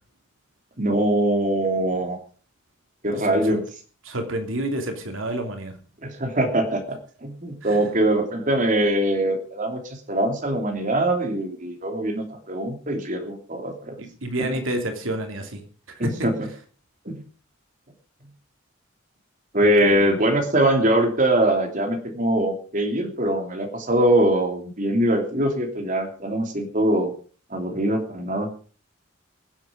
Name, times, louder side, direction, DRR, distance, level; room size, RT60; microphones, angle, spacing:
voice 1, 0.8-2.2 3.0-3.7 6.0-9.8 10.1-14.0 14.4-14.5 16.0-16.3 17.0-17.2 19.5-27.1 27.5-28.5, right 1 dB, 40° right, 3 dB, 3.0 m, -22 dB
voice 2, 3.1-3.6 4.0-5.7 7.6-7.8 14.0-15.6 16.0-16.1 19.8-20.1, right 1 dB, 90° right, 5 dB, 2.9 m, -29 dB
23.0 x 8.0 x 5.1 m, 0.40 s
head